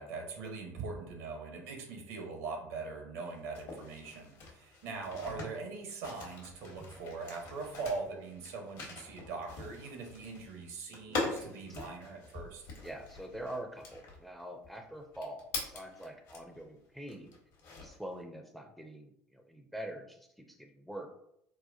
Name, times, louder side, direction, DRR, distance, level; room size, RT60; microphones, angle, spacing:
voice 1, 0.0-12.6, right 4 dB, 70° right, 3 dB, 0.8 m, -41 dB
sound 1, 3.2-16.6 17.1-18.1, left 3 dB, 60° left, 1.0 m, -43 dB
voice 2, 10.9-11.3 12.8-17.3 17.8-21.1, right 1 dB, ahead, 5 dB, 0.4 m, -45 dB
4.1 x 2.2 x 2.5 m, 0.75 s
figure-of-eight pair, 65°, 8 cm